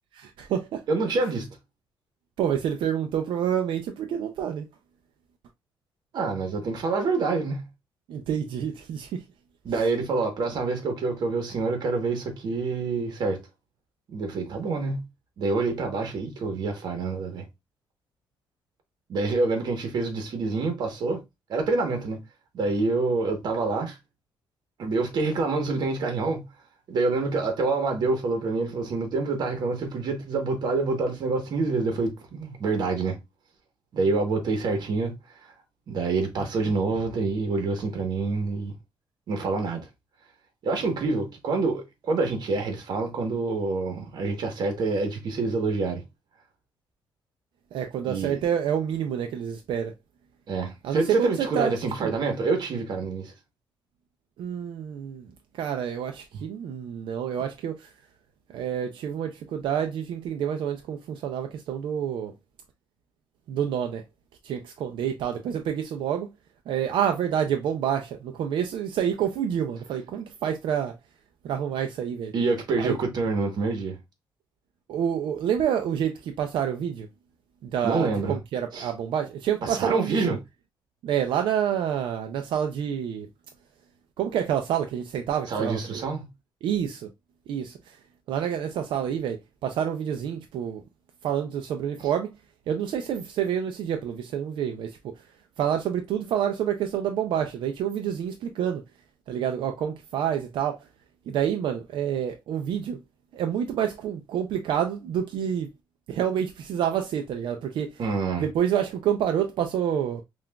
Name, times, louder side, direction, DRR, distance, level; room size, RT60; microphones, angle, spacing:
voice 1, 0.1-0.8 2.4-4.7 8.1-9.2 47.7-49.9 50.8-51.7 52.0-52.1 54.4-57.9 58.5-62.3 63.5-64.0 64.4-66.3 66.7-71.0 71.4-72.3 72.8-73.0 74.9-77.1 77.6-80.4 81.0-83.3 84.2-86.0 86.6-87.1 87.5-88.0 88.3-90.8 91.2-92.3 92.7-95.1 95.6-98.8 99.3-100.8 101.3-103.0 103.3-105.7 106.1-108.0 108.4-110.2, right 9 dB, 70° right, 0.4 m, -28 dB
voice 2, 0.9-1.5 6.1-7.7 9.6-13.4 14.1-15.0 15.4-17.4 19.1-21.2 21.5-22.2 22.5-24.0 24.8-26.4 26.9-33.2 33.9-35.1 35.4-35.5 35.9-38.7 39.3-39.9 40.6-46.0 48.1-48.4 50.5-53.3 72.3-74.0 77.8-78.4 78.7-78.9 79.6-80.4 85.5-86.2 108.0-108.4, right 3 dB, 55° right, 1.0 m, -27 dB
5.7 x 2.4 x 2.2 m
cardioid pair, 155°, 9 cm